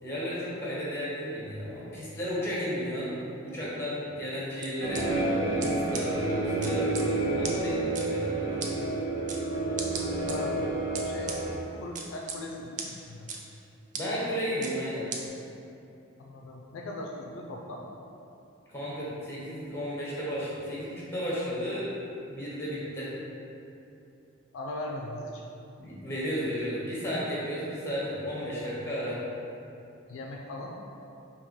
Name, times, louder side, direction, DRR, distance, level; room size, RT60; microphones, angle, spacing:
voice 1, 0.0-8.9 13.9-15.1 18.7-21.9 22.3-23.1 25.8-29.2, equal, 10° left, -7 dB, 1.2 m, -34 dB
sound 1, 4.6-5.0 5.6-5.7 5.9-6.0 6.6-7.0 7.4-7.5 8.0-8.1 8.6-8.7 9.3-9.4 9.8-10.4 11.0-11.4 12.0-12.4 12.8-12.9 13.3-13.4 13.9-14.0 14.6-14.7 15.1-15.2, right 5 dB, 35° right, 0.4 m, -35 dB
sound 2, 4.8-11.5, right 2 dB, 90° right, 1.1 m, -29 dB
voice 2, 10.2-10.7 11.0-13.3 16.2-17.9 24.5-25.5 30.1-30.8, left 1 dB, 65° left, 0 dB, 0.4 m, -39 dB
3.6 x 2.8 x 4.6 m, 2.8 s
head